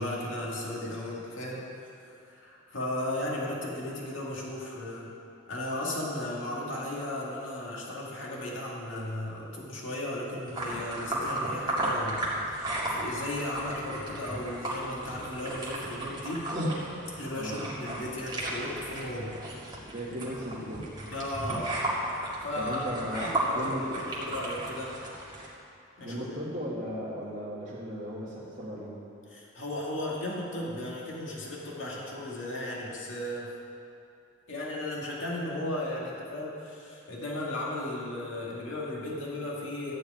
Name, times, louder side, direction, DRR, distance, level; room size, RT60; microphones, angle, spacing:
voice 1, 0.0-1.7 2.1-5.2 5.5-16.5 17.2-19.3 21.1-21.7 22.4-22.8 23.1-25.0 26.0-26.2 29.3-33.5 34.5-39.9, left 1 dB, 75° left, -4 dB, 2.1 m, -35 dB
sound 1, 10.5-25.5, right 1 dB, 25° right, 2.2 m, -34 dB
voice 2, 17.4-17.7 19.9-20.9 22.6-24.0 26.0-28.9, equal, 40° right, -7 dB, 1.8 m, -36 dB
14.0 x 4.9 x 9.0 m, 2.6 s
head